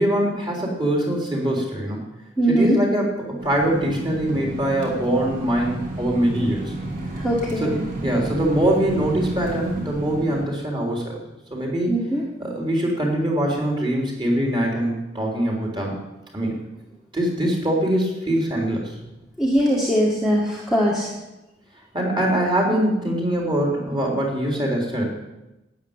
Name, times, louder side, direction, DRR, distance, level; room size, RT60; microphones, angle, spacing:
voice 1, 0.0-2.1 2.5-6.7 7.6-7.7 8.0-11.2 11.5-12.1 12.4-15.9 16.3-16.5 17.1-18.8 21.9-25.0, right 1 dB, 25° right, -1 dB, 3.7 m, -23 dB
voice 2, 2.4-2.8 7.2-7.8 11.9-12.2 19.4-21.1, equal, ahead, -4 dB, 1.8 m, -21 dB
sound 1, 3.4-10.4, right 2 dB, 45° right, 2.9 m, -31 dB
12.5 x 9.4 x 8.8 m, 0.99 s
head